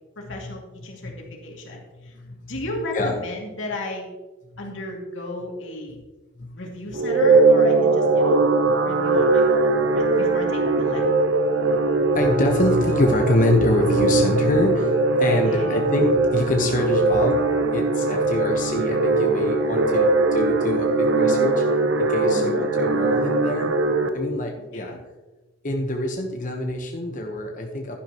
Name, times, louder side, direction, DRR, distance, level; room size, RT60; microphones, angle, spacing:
voice 1, 0.2-1.1 1.4-1.8 2.5-4.1 4.6-6.0 6.5-8.5 8.8-11.0 15.3-15.8 22.3-22.7 24.7-25.0, left 1 dB, 90° left, 0 dB, 2.5 m, -34 dB
sound 1, 6.9-24.1, right 3 dB, 80° right, 1.0 m, -20 dB
voice 2, 12.1-21.6 22.0-23.7 24.1-25.0 25.6-28.0, left 1 dB, 45° left, 2 dB, 1.0 m, -25 dB
11.5 x 10.5 x 3.0 m, 1.2 s
head